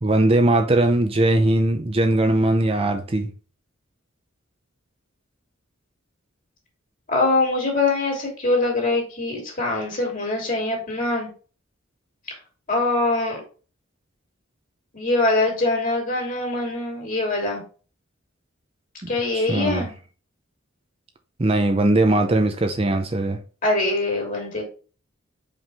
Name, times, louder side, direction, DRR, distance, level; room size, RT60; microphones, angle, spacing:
voice 1, 0.0-3.3 19.3-19.9 21.4-23.4, right 2 dB, 25° right, 0.6 m, -20 dB
voice 2, 7.1-11.3 12.7-13.4 14.9-17.6 19.1-19.9 23.6-24.6, left 2 dB, 40° left, 2.9 m, -23 dB
5.7 x 5.2 x 3.4 m
head